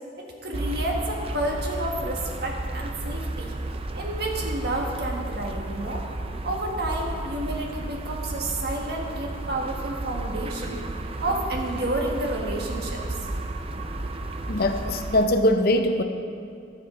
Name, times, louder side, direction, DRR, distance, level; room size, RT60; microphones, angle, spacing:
voice 1, 0.2-3.5 3.9-6.0 6.4-10.8 11.2-13.0, right 1 dB, 60° right, 0 dB, 1.6 m, -30 dB
sound 1, 0.5-15.3, right 2 dB, 30° right, 0.5 m, -33 dB
voice 2, 14.5-16.0, left 1 dB, 55° left, 7 dB, 0.7 m, -22 dB
12.0 x 7.4 x 5.0 m, 2.4 s
head